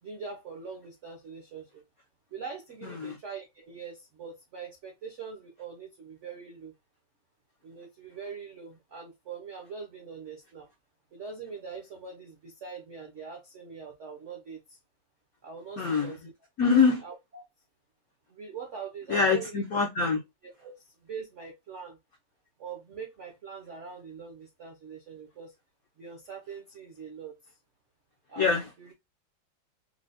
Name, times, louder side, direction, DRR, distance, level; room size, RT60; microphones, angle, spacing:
voice 1, 0.0-1.8 2.3-6.7 7.6-10.7 11.1-14.8 15.4-16.2 17.0-17.4 18.3-19.6 20.4-22.0 22.6-25.5 26.0-27.3 28.3-28.9, right 5 dB, 75° right, 0.6 m, -43 dB
voice 2, 2.8-3.2 15.8-16.2 16.6-17.0 19.1-20.2 28.4-28.7, left 5 dB, 75° left, 0.8 m, -24 dB
4.7 x 2.0 x 2.5 m
omnidirectional pair, 2.3 m